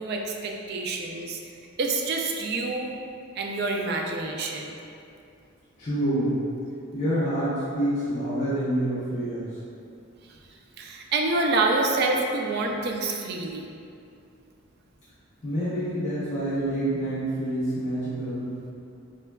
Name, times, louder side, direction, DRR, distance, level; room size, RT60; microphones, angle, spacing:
voice 1, 0.0-1.4 1.8-2.9 3.4-4.8 10.8-13.7, right 3 dB, 50° right, 1 dB, 0.3 m, -27 dB
voice 2, 5.8-6.4 6.9-9.5 15.4-18.5, right 1 dB, 35° left, -12 dB, 0.6 m, -27 dB
4.4 x 2.2 x 2.2 m, 2.5 s
head